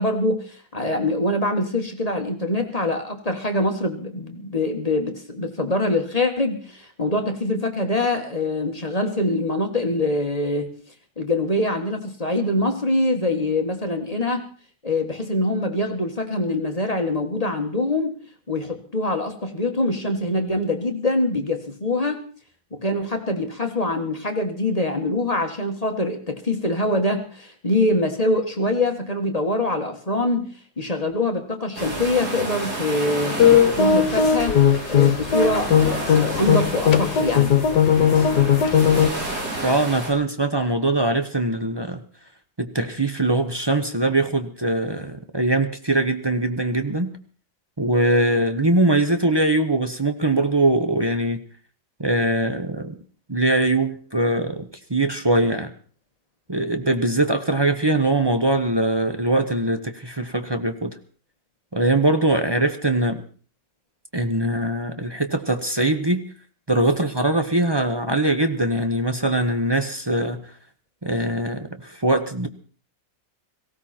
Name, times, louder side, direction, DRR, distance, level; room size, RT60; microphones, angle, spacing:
voice 1, 0.0-10.7 11.2-14.5 14.8-18.2 18.5-22.2 22.7-34.6 34.9-37.5, left 1 dB, 20° left, 4 dB, 1.6 m, -24 dB
sound 1, 31.7-40.1, right 2 dB, 55° right, 4.7 m, -31 dB
sound 2, 33.4-39.1, left 8 dB, 65° left, 1.7 m, -18 dB
voice 2, 39.6-42.0 42.6-47.1 47.8-51.4 52.0-53.0 53.3-55.7 56.5-60.9 61.7-63.2 64.1-66.3 66.7-70.5 71.0-72.5, right 2 dB, 20° right, 7 dB, 0.7 m, -22 dB
18.0 x 16.5 x 4.4 m, 0.41 s
omnidirectional pair, 2.0 m